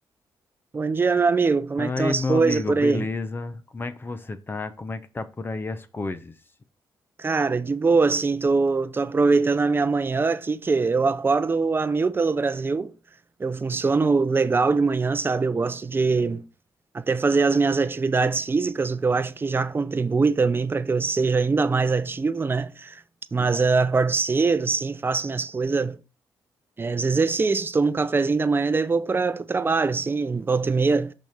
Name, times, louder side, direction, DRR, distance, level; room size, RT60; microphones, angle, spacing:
voice 1, 0.7-3.1 7.2-12.9 13.4-16.4 16.9-23.0 23.3-26.0 26.8-31.1, right 4 dB, 30° right, 0.6 m, -22 dB
voice 2, 1.8-6.3, left 3 dB, 25° left, 0.7 m, -30 dB
6.2 x 4.3 x 5.0 m
cardioid pair, 90°, 8 cm